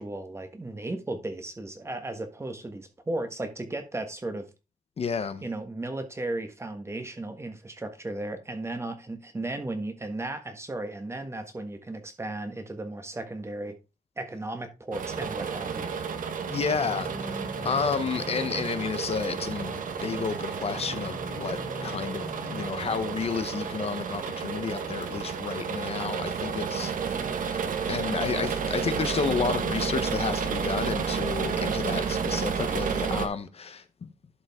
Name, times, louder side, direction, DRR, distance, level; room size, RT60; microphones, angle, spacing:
voice 1, 0.0-4.5 5.4-13.8 14.2-15.9, right 2 dB, 20° right, 1.4 m, -35 dB
voice 2, 5.0-5.4 16.5-34.1, left 5 dB, 45° left, 0.8 m, -31 dB
sound 1, 14.9-33.3, right 6 dB, 75° right, 1.1 m, -31 dB
sound 2, 16.7-23.5, left 2 dB, 10° left, 1.4 m, -43 dB
sound 3, 19.4-31.9, right 3 dB, 35° right, 3.2 m, -51 dB
11.5 x 5.1 x 3.6 m
wide cardioid pair, 140°, 14 cm